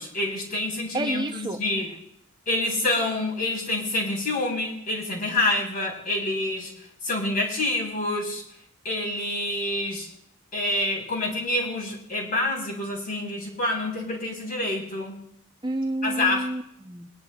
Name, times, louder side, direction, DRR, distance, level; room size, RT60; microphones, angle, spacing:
voice 1, 0.0-1.9 2.5-6.7 7.0-8.4 8.8-10.1 10.5-15.2 16.0-16.5, left 2 dB, 40° left, -1 dB, 3.7 m, -27 dB
voice 2, 0.9-1.6 15.6-17.1, right 2 dB, 20° right, 6 dB, 0.6 m, -29 dB
22.5 x 10.5 x 2.3 m, 0.73 s
head